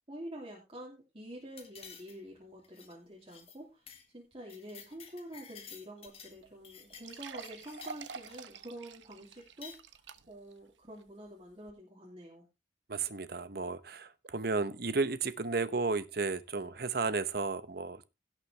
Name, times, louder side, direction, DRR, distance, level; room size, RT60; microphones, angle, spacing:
voice 1, 0.1-12.4, right 1 dB, 30° right, 2.8 m, -48 dB
sound 1, 1.6-2.4 2.6-2.9 3.3-3.6 3.9-4.1 4.3-6.4 6.6-8.4 9.4-9.8, left 7 dB, 30° left, 1.7 m, -52 dB
sound 2, 6.1-6.2 6.4-6.5 6.9-10.5 11.0-11.1 11.7-11.8, right 5 dB, 85° right, 1.0 m, -47 dB
voice 2, 12.9-18.1, right 4 dB, 55° right, 0.9 m, -33 dB
17.0 x 6.6 x 3.3 m
head